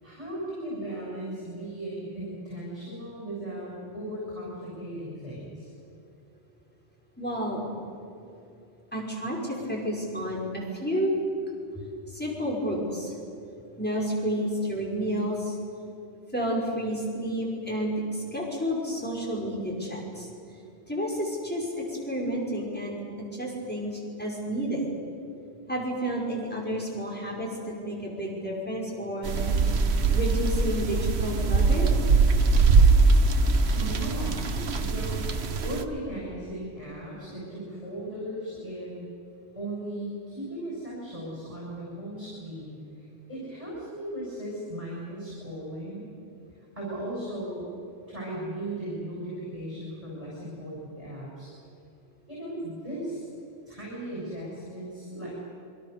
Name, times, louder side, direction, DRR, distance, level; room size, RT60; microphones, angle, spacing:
voice 1, 0.0-5.7 33.7-34.4 34.8-39.1 39.5-46.1 46.6-47.7 48.1-51.5 52.3-53.3 53.7-55.4, right 1 dB, 30° right, -5 dB, 7.4 m, -37 dB
voice 2, 7.2-7.6 8.9-11.2 12.1-13.1 13.8-15.6 16.3-20.3 20.9-23.0 23.3-24.9 25.7-29.5 30.1-31.9, equal, 10° left, -3 dB, 5.5 m, -30 dB
sound 1, 29.3-35.8, right 4 dB, 65° right, 1.4 m, -22 dB
27.5 x 24.0 x 6.9 m, 2.6 s
omnidirectional pair, 1.2 m